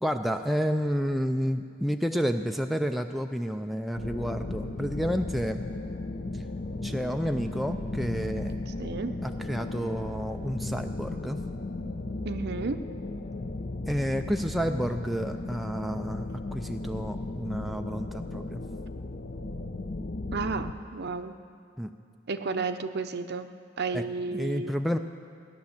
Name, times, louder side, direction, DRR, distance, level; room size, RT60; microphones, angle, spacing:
voice 1, 0.0-5.6 6.3-6.4 6.8-8.6 9.2-11.4 13.9-18.6 21.8-21.9 23.9-24.0 24.3-25.0, equal, ahead, 5 dB, 0.4 m, -30 dB
sound 1, 4.0-20.7, left 2 dB, 40° left, 0.6 m, -35 dB
voice 2, 8.7-9.1 12.2-12.8 20.3-21.3 22.3-23.5 23.8-24.8, right 4 dB, 50° right, 9 dB, 0.7 m, -32 dB
17.0 x 10.5 x 7.1 m, 2.3 s
head